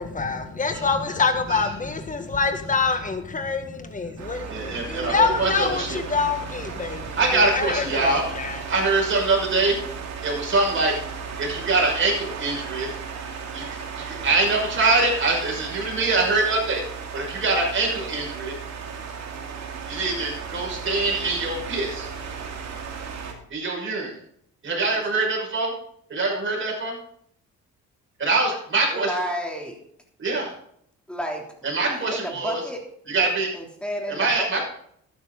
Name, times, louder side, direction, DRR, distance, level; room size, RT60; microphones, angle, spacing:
voice 1, 0.0-8.6, left 4 dB, 25° left, 7 dB, 1.7 m, -26 dB
sound 1, 4.2-23.3, right 6 dB, 65° right, 2.4 m, -35 dB
voice 2, 4.5-6.0 7.2-8.2 8.7-9.8 10.2-10.9 11.4-12.9 13.5-16.8 17.1-18.5 19.9-22.1 23.5-24.1 24.6-25.7 26.1-27.0 28.2-29.3 30.2-30.5 31.6-32.6 33.1-33.5 34.1-34.7, right 3 dB, 40° right, -2 dB, 5.9 m, -24 dB
voice 3, 24.9-25.3 28.9-29.8 31.1-31.4 31.9-32.8 33.5-34.5, equal, 5° left, 0 dB, 3.3 m, -31 dB
12.0 x 9.9 x 4.0 m, 0.68 s
cardioid pair, 90°, 30 cm